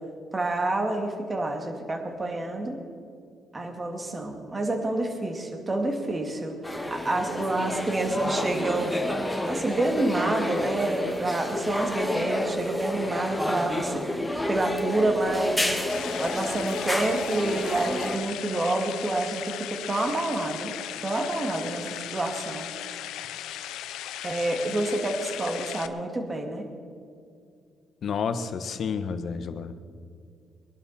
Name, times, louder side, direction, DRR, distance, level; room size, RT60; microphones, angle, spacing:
voice 1, 0.3-2.8 3.5-9.0 9.4-14.2 14.5-15.8 16.2-20.7 21.0-22.7 24.2-26.7, right 2 dB, 25° right, 3 dB, 2.4 m, -28 dB
sound 1, 6.6-18.2, left 1 dB, 5° left, 2.0 m, -30 dB
sound 2, 15.9-25.9, left 12 dB, 90° left, 0.7 m, -37 dB
voice 2, 28.0-29.9, left 6 dB, 60° left, 9 dB, 1.2 m, -30 dB
23.0 x 11.5 x 4.4 m, 2.4 s
cardioid pair, 90°, 0 cm